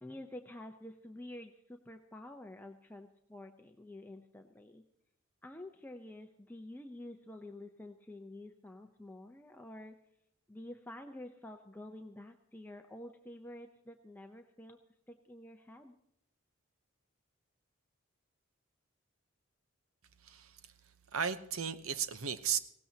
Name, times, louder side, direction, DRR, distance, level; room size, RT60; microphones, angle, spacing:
voice 1, 0.0-4.8 5.4-10.0 10.5-14.8 15.1-15.9, left 1 dB, 10° left, 4 dB, 0.7 m, -49 dB
voice 2, 20.2-20.6 21.1-22.6, right 7 dB, 85° right, 11 dB, 0.9 m, -35 dB
19.5 x 17.0 x 2.9 m, 0.73 s
head